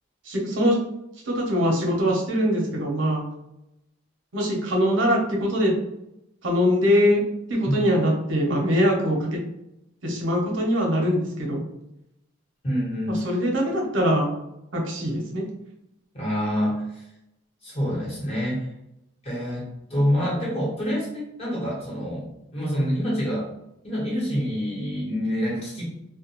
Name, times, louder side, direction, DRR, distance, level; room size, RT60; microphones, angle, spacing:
voice 1, 0.3-0.8 1.3-3.2 4.3-5.7 6.4-7.2 7.5-9.4 10.0-11.6 13.1-14.3 14.7-15.4, equal, 70° right, -1 dB, 0.7 m, -22 dB
voice 2, 12.6-13.4 16.1-16.8 17.6-18.7 19.2-19.6 19.9-23.5 23.8-25.8, equal, 35° left, -6 dB, 1.1 m, -26 dB
2.3 x 2.2 x 2.9 m, 0.84 s
head